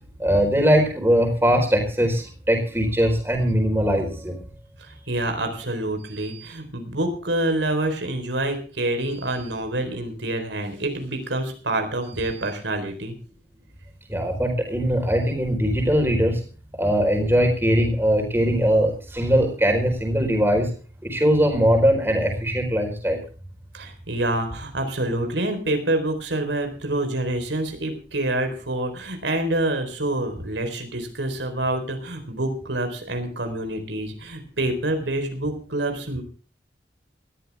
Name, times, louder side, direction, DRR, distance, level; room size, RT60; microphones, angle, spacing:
voice 1, 0.2-4.4 14.1-16.4 16.8-20.7 21.0-23.2, equal, 15° right, 2 dB, 4.4 m, -21 dB
voice 2, 4.8-13.2 23.7-36.2, right 1 dB, 85° right, 6 dB, 4.2 m, -27 dB
19.0 x 14.0 x 3.5 m, 0.39 s
head